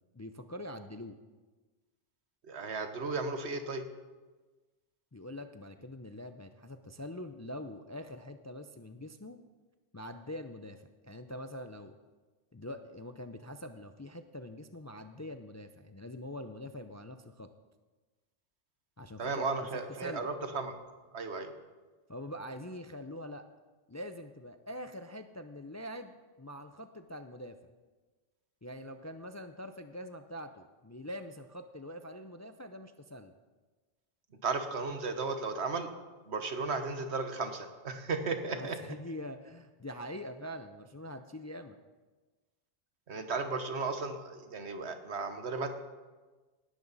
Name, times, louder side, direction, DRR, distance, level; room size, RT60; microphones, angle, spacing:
voice 1, 0.1-1.2 5.1-9.4 9.9-12.0 12.5-17.5 19.0-19.7 20.0-20.3 22.1-23.5 23.9-26.1 26.4-27.6 28.6-33.3 38.5-41.8, left 1 dB, 25° left, 8 dB, 0.4 m, -44 dB
voice 2, 2.4-3.8 19.2-20.7 21.1-21.5 34.4-35.9 36.3-38.8 43.1-45.7, right 4 dB, 75° right, 7 dB, 1.4 m, -35 dB
18.5 x 11.5 x 4.1 m, 1.3 s
omnidirectional pair, 1.1 m